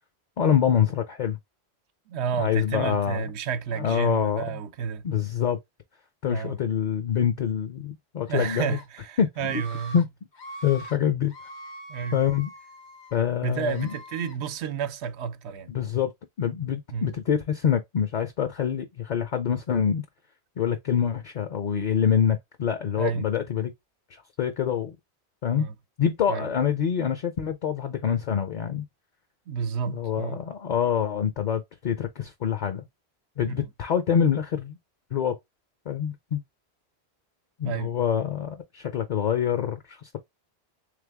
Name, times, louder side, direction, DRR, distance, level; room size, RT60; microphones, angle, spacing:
voice 1, 0.4-1.4 2.4-3.3 3.7-4.6 5.0-5.6 6.2-8.8 9.2-9.6 9.9-10.1 10.6-11.3 12.1-12.5 13.1-14.0 15.7-16.1 16.4-20.0 20.6-23.7 24.1-25.0 25.4-25.7 26.0-28.9 29.9-32.8 33.4-34.8 35.1-35.4 35.9-36.4 37.6-40.2, left 8 dB, 55° left, 0.5 m, -26 dB
voice 2, 2.1-5.0 6.3-6.6 8.3-10.0 11.9-12.2 13.3-15.7 16.9-17.1 23.0-23.3 25.5-25.7 26.3-26.5 29.5-30.4 33.5-33.7 37.6-37.9, right 7 dB, 90° right, 0.9 m, -31 dB
Screaming, 8.3-8.8 9.4-10.0 10.3-11.0 11.3-13.2 13.6-14.4, right 1 dB, 85° left, 1.3 m, -43 dB
3.4 x 3.3 x 3.4 m
omnidirectional pair, 1.1 m